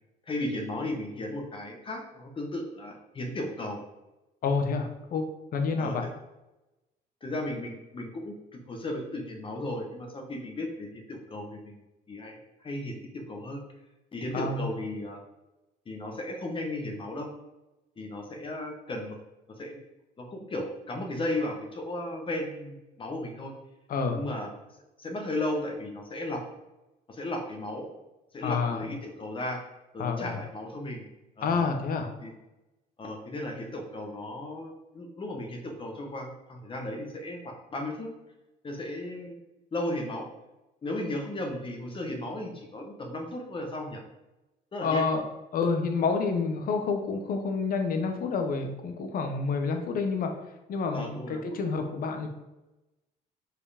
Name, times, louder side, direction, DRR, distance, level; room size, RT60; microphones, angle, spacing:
voice 1, 0.3-3.8 5.8-6.1 7.2-11.8 12.1-12.4 12.6-13.6 14.1-15.2 15.8-17.3 18.0-19.2 19.6-19.8 20.2-23.5 24.1-24.5 25.0-26.4 27.1-27.9 28.3-29.6 29.9-31.1 31.4-31.6 32.2-32.3 33.0-38.1 38.6-39.4 39.7-40.3 40.8-44.0 44.7-45.1 50.9-51.6, left 1 dB, 30° left, 2 dB, 1.3 m, -35 dB
voice 2, 4.4-5.3 5.5-6.1 14.3-14.7 23.9-24.2 28.4-28.8 30.0-30.4 31.4-32.1 44.8-45.2 45.5-50.4 50.7-52.3, left 4 dB, 60° left, 5 dB, 1.1 m, -28 dB
5.1 x 4.8 x 5.0 m, 0.99 s
cardioid pair, 110°, 17 cm